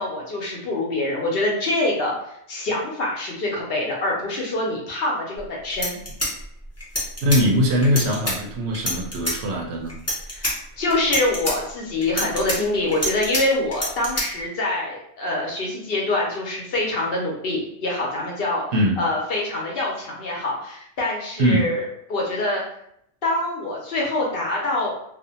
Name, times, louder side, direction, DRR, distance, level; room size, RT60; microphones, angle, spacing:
voice 1, 0.0-6.0 10.3-18.6 19.0-21.8 22.1-22.6 23.2-24.9, left 2 dB, 60° left, -2 dB, 0.8 m, -25 dB
sound 1, 5.4-5.5 5.7-7.4 7.8-8.3 8.7-9.4 9.9-10.5 10.9-11.5 12.0-13.4 13.7-14.2, equal, 20° left, 0.4 m, -26 dB
voice 2, 7.2-10.0 18.7-19.0 21.4-21.7, equal, 70° right, 0 dB, 0.8 m, -21 dB
2.5 x 2.0 x 2.7 m, 0.72 s
omnidirectional pair, 1.2 m